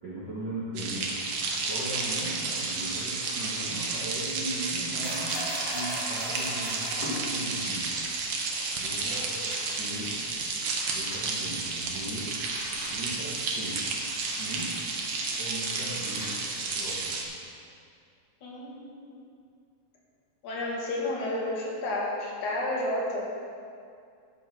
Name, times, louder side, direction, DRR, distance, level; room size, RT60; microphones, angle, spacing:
voice 1, 0.0-1.2 1.6-8.0 8.8-9.4 9.7-10.2 10.9-12.3 12.9-13.8 14.2-14.8 15.4-16.4 16.6-17.2, right 1 dB, 45° right, -8 dB, 1.8 m, -38 dB
sound 1, 0.8-17.2, right 3 dB, 60° right, 1.8 m, -32 dB
sound 2, 5.0-16.9, left 1 dB, 35° left, 2.4 m, -42 dB
voice 2, 9.0-9.4 18.4-19.1 20.4-23.3, left 1 dB, 75° left, -4 dB, 3.3 m, -31 dB
13.0 x 5.6 x 5.9 m, 2.3 s
omnidirectional pair, 3.5 m